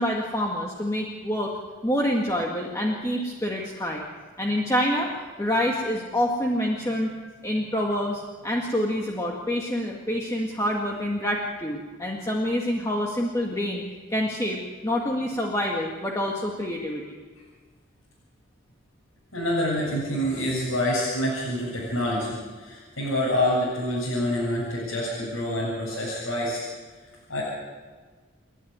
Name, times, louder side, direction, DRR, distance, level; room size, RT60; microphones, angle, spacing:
voice 1, 0.0-1.5 1.8-4.1 4.4-5.1 5.4-7.1 7.4-13.8 14.1-17.2, equal, 15° left, -1 dB, 1.9 m, -27 dB
voice 2, 19.3-26.6 27.3-27.4, left 1 dB, 85° left, -6 dB, 7.6 m, -27 dB
29.5 x 11.0 x 9.7 m, 1.5 s
head